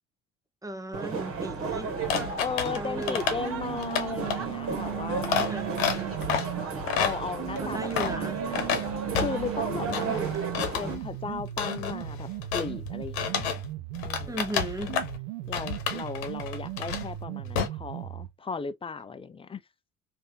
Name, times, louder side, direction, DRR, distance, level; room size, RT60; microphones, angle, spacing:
voice 1, 0.6-2.0 2.8-3.3 5.5-6.2 7.6-8.4 9.9-10.4 14.3-15.0, right 2 dB, 10° right, 0.8 m, -36 dB
sound 1, 0.9-10.9, right 4 dB, 45° right, 1.4 m, -34 dB
sound 2, 2.0-13.7 13.9-15.2 15.5-17.2 17.5-17.7, left 7 dB, 90° left, 0.9 m, -31 dB
voice 2, 2.4-5.4 7.0-8.7 9.2-10.2 10.8-12.3 12.5-13.6 14.0-14.4 15.5-19.6, left 5 dB, 15° left, 0.5 m, -36 dB
sound 3, 3.4-6.7 7.4-14.4 14.9-18.4, right 17 dB, 85° right, 0.7 m, -37 dB
3.3 x 2.8 x 2.7 m
supercardioid pair, 80°, 31 cm